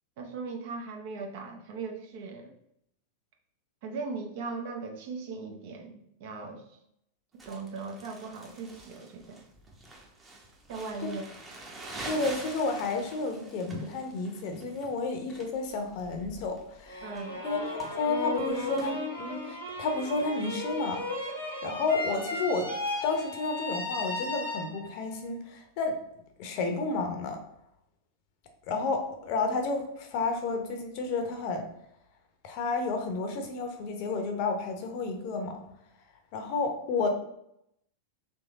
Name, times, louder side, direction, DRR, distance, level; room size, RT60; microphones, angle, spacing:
voice 1, 0.2-2.5 3.8-6.8 7.5-9.4 10.7-11.2 17.0-17.4, right 4 dB, 50° right, 2 dB, 0.7 m, -38 dB
Crumpling crinkling, 7.4-18.9, right 2 dB, 15° right, 0.9 m, -45 dB
voice 2, 12.0-17.1 17.4-21.0 21.6-22.7 23.0-26.0 26.4-27.4 28.7-31.7 32.4-35.6 36.3-37.1, left 3 dB, 45° left, 5 dB, 0.8 m, -31 dB
sound 1, 16.9-25.1, left 1 dB, 85° right, 1.3 m, -35 dB
3.5 x 3.2 x 4.0 m, 0.77 s
figure-of-eight pair, 90°, 0 cm